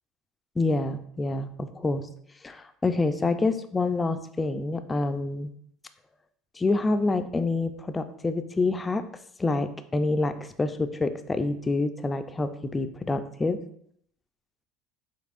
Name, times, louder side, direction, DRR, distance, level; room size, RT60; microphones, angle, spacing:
voice 1, 0.6-2.1 2.4-5.5 6.6-9.0 9.4-13.6, left 3 dB, 15° left, 9 dB, 0.3 m, -27 dB
5.3 x 3.9 x 2.5 m, 0.67 s
cardioid pair, 135°, 0 cm